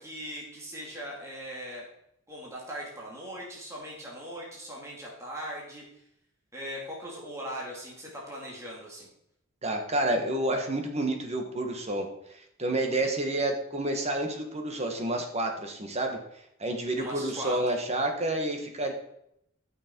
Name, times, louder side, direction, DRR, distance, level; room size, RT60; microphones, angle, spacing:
voice 1, 0.0-1.9 2.3-5.8 6.5-9.1 10.5-10.6 17.0-17.6, equal, 15° right, -4 dB, 2.6 m, -39 dB
voice 2, 9.6-12.1 12.6-16.2 16.6-18.9, right 1 dB, 30° right, 3 dB, 1.6 m, -29 dB
13.0 x 6.2 x 4.6 m, 0.76 s
head